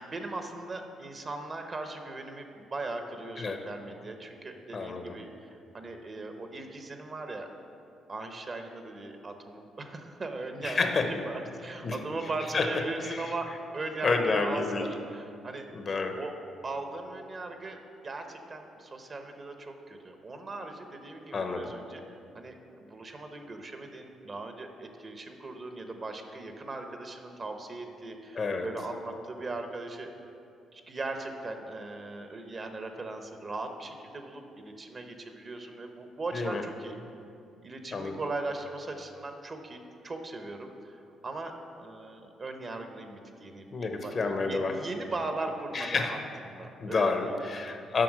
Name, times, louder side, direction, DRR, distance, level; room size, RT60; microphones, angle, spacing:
voice 1, 0.0-7.5 8.1-10.9 11.3-15.6 16.2-16.3 16.6-30.3 30.7-36.9 37.6-39.8 40.0-46.2 46.4-47.5, right 2 dB, 35° right, 5 dB, 0.9 m, -39 dB
voice 2, 4.7-5.1 10.6-11.1 11.8-12.0 12.5-12.7 13.0-13.2 14.0-14.8 15.7-16.2 21.3-21.7 28.4-28.7 36.3-36.6 37.9-38.2 43.7-44.8 45.7-46.2 46.8-48.0, left 4 dB, 45° left, 6 dB, 0.8 m, -29 dB
7.6 x 5.9 x 6.1 m, 2.6 s
cardioid pair, 90°, 0 cm